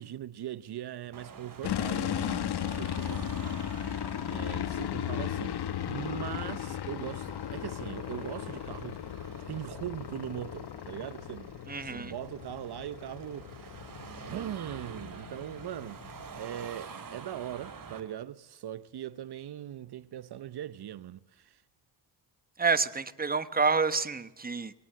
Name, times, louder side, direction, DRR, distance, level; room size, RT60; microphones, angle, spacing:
voice 1, 0.0-3.3 4.3-9.0 9.5-13.9 14.2-16.0 16.4-21.6, right 11 dB, 65° right, 0.8 m, -40 dB
Car passing by / Traffic noise roadway noise / Engine, 1.1-18.0, right 5 dB, 50° right, 3.1 m, -48 dB
sound 1, 1.6-16.4, left 10 dB, 70° left, 0.9 m, -36 dB
voice 2, 11.7-12.1 22.6-24.7, right 4 dB, 20° right, 1.2 m, -28 dB
21.5 x 18.5 x 7.7 m
cardioid pair, 80°, 41 cm